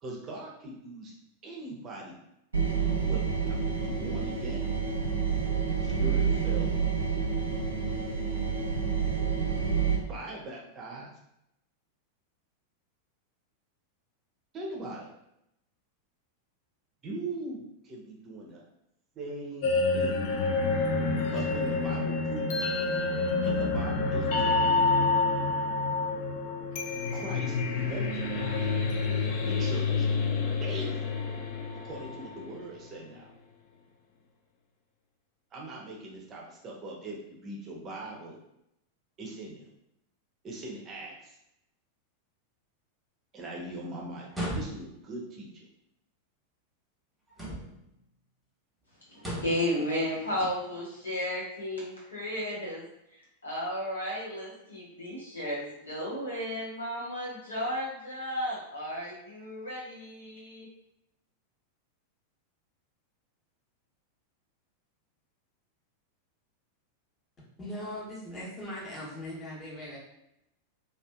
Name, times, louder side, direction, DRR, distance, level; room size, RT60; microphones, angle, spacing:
voice 1, 0.0-1.1 1.4-2.2 3.1-4.7 5.8-6.7 10.1-11.1 14.5-15.1 17.0-18.6 19.1-20.2 21.3-22.6 23.4-24.7 27.1-28.7 29.4-30.1 30.6-31.0 31.8-33.3 35.5-38.4 39.2-39.6 40.4-41.4 43.3-45.7, right 2 dB, 30° right, -2 dB, 0.6 m, -41 dB
sound 1, 2.5-10.0, right 6 dB, 70° right, 0.5 m, -28 dB
sound 2, 19.6-32.6, left 3 dB, 50° left, 0.4 m, -28 dB
sound 3, 44.3-45.1 47.3-47.9 49.1-49.7, right 1 dB, 5° right, 1.0 m, -36 dB
voice 2, 49.1-52.8 53.1-60.7, left 1 dB, 75° left, -6 dB, 1.0 m, -34 dB
voice 3, 67.6-70.0, left 1 dB, 20° left, -5 dB, 0.9 m, -39 dB
2.5 x 2.4 x 2.2 m, 0.82 s
figure-of-eight pair, 90°, 0 cm